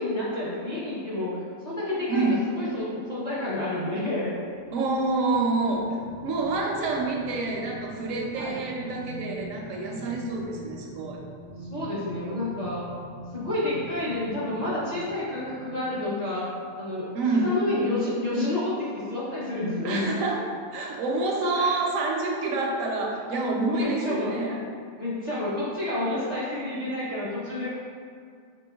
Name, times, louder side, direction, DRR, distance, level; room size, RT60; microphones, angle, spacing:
voice 1, 0.0-2.3 2.6-4.3 8.4-8.5 11.7-12.9 13.3-16.5 16.8-17.1 17.4-20.1 21.5-21.7 23.7-24.3 25.0-27.8, left 2 dB, 35° left, -10 dB, 0.7 m, -29 dB
voice 2, 2.1-2.4 4.7-6.0 6.2-11.2 17.1-17.5 19.8-24.6, right 3 dB, 75° right, -1 dB, 0.9 m, -27 dB
sound 1, 4.3-17.0 17.5-17.7, right 1 dB, 65° left, 1.7 m, -44 dB
5.0 x 3.2 x 2.3 m, 2.2 s
omnidirectional pair, 1.5 m